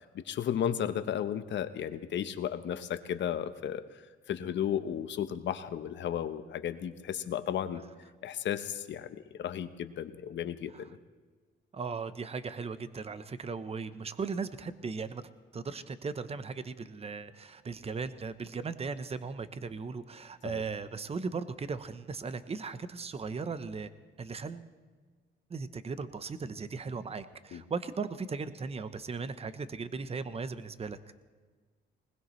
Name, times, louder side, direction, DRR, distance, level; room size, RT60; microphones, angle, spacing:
voice 1, 0.1-4.0 4.3-7.8 8.2-11.0 20.4-20.6 27.5-27.6, left 9 dB, 65° left, 11 dB, 1.0 m, -34 dB
voice 2, 11.7-15.2 15.5-23.9 24.2-24.7 25.5-31.0, right 4 dB, 30° right, 12 dB, 0.9 m, -37 dB
20.0 x 20.0 x 3.2 m, 1.4 s
cardioid pair, 90°, 20 cm